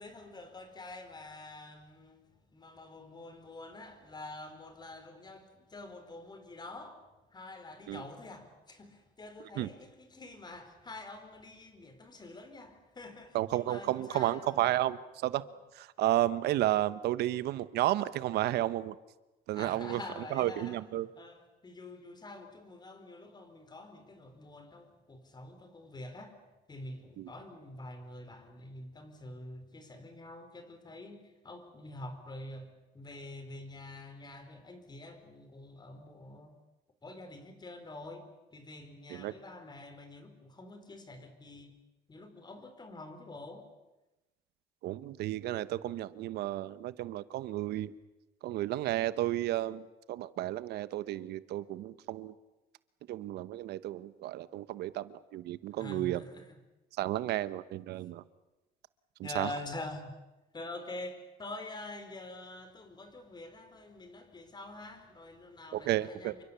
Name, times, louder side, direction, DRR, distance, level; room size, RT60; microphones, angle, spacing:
voice 1, 0.0-2.2 2.5-14.8 19.5-20.8 21.2-26.4 26.7-36.6 37.0-41.8 42.1-43.7 55.8-56.5 59.2-60.2 60.5-66.4, left 2 dB, 25° left, 4.4 m, -46 dB
voice 2, 13.3-15.4 15.7-19.0 19.5-20.0 20.3-21.1 27.2-27.3 39.1-39.3 44.8-47.9 48.4-52.3 53.1-56.2 57.0-58.2 59.2-59.5 65.7-66.3, right 14 dB, 75° right, 1.1 m, -32 dB
28.5 x 24.0 x 7.0 m
cardioid pair, 110°, 17 cm